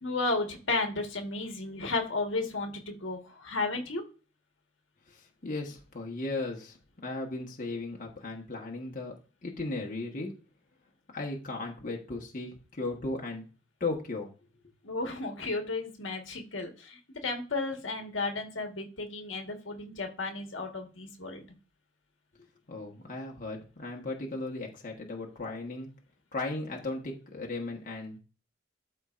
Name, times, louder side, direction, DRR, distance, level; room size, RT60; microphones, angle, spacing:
voice 1, 0.0-4.0 14.8-21.4, left 3 dB, 70° left, 3 dB, 1.5 m, -33 dB
voice 2, 5.1-9.1 9.4-10.3 11.1-13.4 13.8-14.3 22.7-25.9 26.3-28.2, left 2 dB, 45° left, -1 dB, 1.3 m, -36 dB
12.5 x 4.5 x 2.5 m, 0.35 s
head